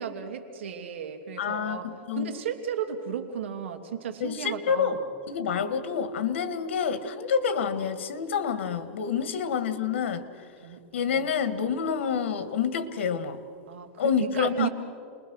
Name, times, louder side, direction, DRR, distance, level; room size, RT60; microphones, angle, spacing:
voice 1, 0.0-5.0 10.6-10.8 11.1-11.2 13.7-14.7, right 8 dB, 85° right, 5 dB, 2.8 m, -34 dB
voice 2, 1.4-2.3 4.2-5.0 5.3-10.2 10.9-13.4 14.0-14.7, left 7 dB, 85° left, 12 dB, 1.9 m, -28 dB
29.5 x 21.5 x 6.5 m, 2.6 s
supercardioid pair, 175°, 6 cm